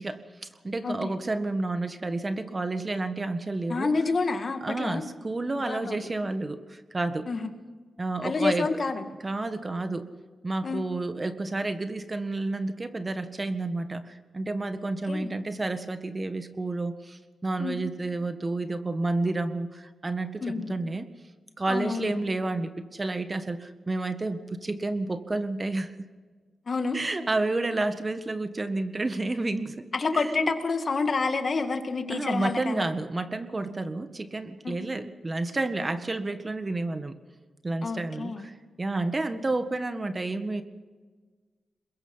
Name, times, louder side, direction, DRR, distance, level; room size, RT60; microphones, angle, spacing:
voice 1, 0.0-3.9 4.6-7.3 8.0-8.7 9.2-10.1 10.4-21.1 21.6-26.1 26.9-30.5 32.1-37.2 37.6-40.6, right 2 dB, 30° right, 10 dB, 1.6 m, -30 dB
voice 2, 0.8-1.1 3.7-5.0 5.6-6.0 7.3-7.5 8.2-9.1 10.6-10.8 15.1-15.3 17.6-17.8 20.4-20.8 21.7-22.1 26.7-27.0 29.9-32.9 34.6-34.8 37.8-38.5, left 4 dB, 50° left, 7 dB, 2.2 m, -28 dB
22.0 x 21.5 x 5.7 m, 1.4 s
cardioid pair, 70°, 0 cm